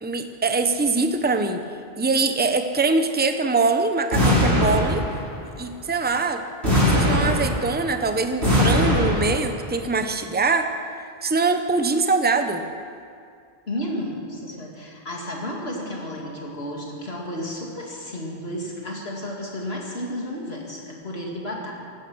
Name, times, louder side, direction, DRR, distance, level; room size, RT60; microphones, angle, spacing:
voice 1, 0.0-1.6 2.0-5.0 5.6-6.4 6.9-10.7 11.2-12.6, right 3 dB, 10° right, 7 dB, 0.7 m, -23 dB
sound 1, 4.1-5.4 6.6-7.9 8.4-9.5, left 1 dB, 85° right, 5.8 m, -20 dB
voice 2, 13.7-21.7, left 1 dB, 75° left, -2 dB, 2.6 m, -32 dB
16.5 x 12.5 x 6.3 m, 2.3 s
omnidirectional pair, 1.1 m